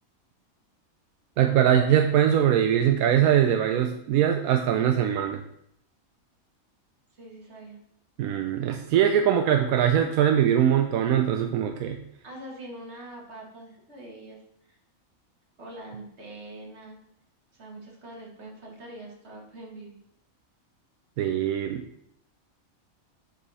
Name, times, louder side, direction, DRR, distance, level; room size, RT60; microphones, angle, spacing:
voice 1, 1.4-5.4 8.2-12.0 21.2-21.8, right 10 dB, 90° right, 5 dB, 1.0 m, -22 dB
voice 2, 7.2-7.8 12.2-14.8 15.6-17.0 17.5-20.0, right 1 dB, 50° right, -1 dB, 1.9 m, -43 dB
6.2 x 5.4 x 4.1 m, 0.73 s
omnidirectional pair, 1.5 m